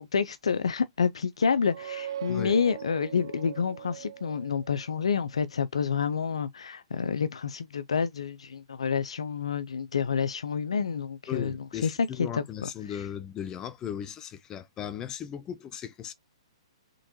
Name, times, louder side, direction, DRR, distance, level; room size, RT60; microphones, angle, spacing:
voice 1, 0.0-11.6 11.8-12.7, left 6 dB, 80° left, 0.4 m, -28 dB
sound 1, 1.5-5.1, right 10 dB, 60° right, 0.3 m, -41 dB
voice 2, 2.3-2.6 11.3-16.1, left 9 dB, 20° left, 0.4 m, -37 dB
3.8 x 3.5 x 2.9 m
hypercardioid pair, 130°, 3 cm